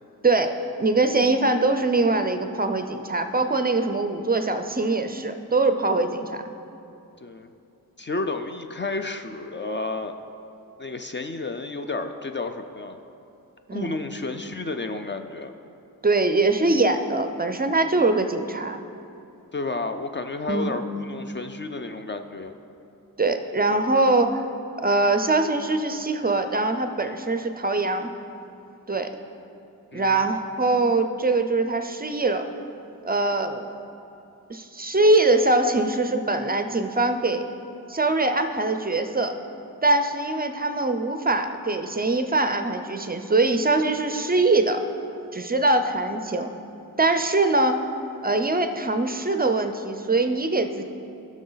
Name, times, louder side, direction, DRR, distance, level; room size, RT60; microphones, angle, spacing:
voice 1, 0.2-6.4 13.7-14.0 16.0-18.8 20.5-20.8 23.2-24.5 24.8-28.1 28.9-29.1 29.9-32.5 33.0-33.8 34.5-37.5 37.9-39.4 39.8-44.8 45.3-46.5 47.0-47.9 48.2-50.8, right 2 dB, 25° right, 8 dB, 0.4 m, -23 dB
voice 2, 8.0-10.2 10.8-13.0 13.7-15.5 19.5-22.5 29.9-30.3, left 3 dB, 30° left, 7 dB, 0.4 m, -31 dB
14.0 x 6.2 x 3.9 m, 2.8 s
wide cardioid pair, 95°, 36 cm